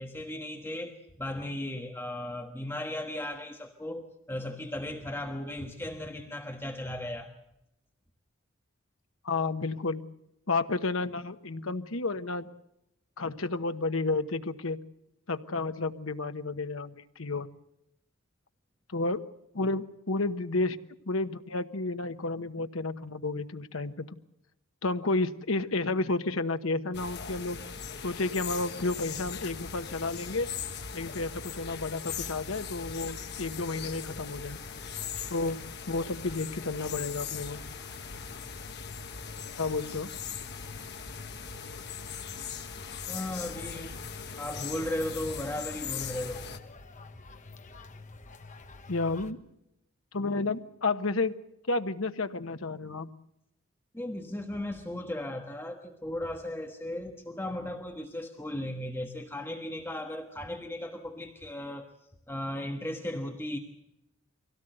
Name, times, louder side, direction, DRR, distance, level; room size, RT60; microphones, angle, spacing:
voice 1, 0.0-7.3 43.1-44.0 44.4-46.5 53.9-61.9 62.3-63.6, left 1 dB, 10° left, 3 dB, 1.3 m, -36 dB
voice 2, 9.2-10.0 10.5-12.5 13.2-14.8 15.3-17.5 18.9-19.2 19.5-20.8 21.1-24.1 24.8-27.6 28.0-30.5 30.9-34.6 35.3-35.6 35.9-37.6 39.6-40.1 48.9-49.4 50.1-51.4 51.7-53.1, left 3 dB, 80° left, 8 dB, 1.1 m, -31 dB
sound 1, 26.9-46.6, left 6 dB, 55° left, 1.5 m, -40 dB
sound 2, 33.9-49.3, left 2 dB, 35° left, 1.2 m, -50 dB
24.0 x 17.5 x 7.9 m, 0.83 s
head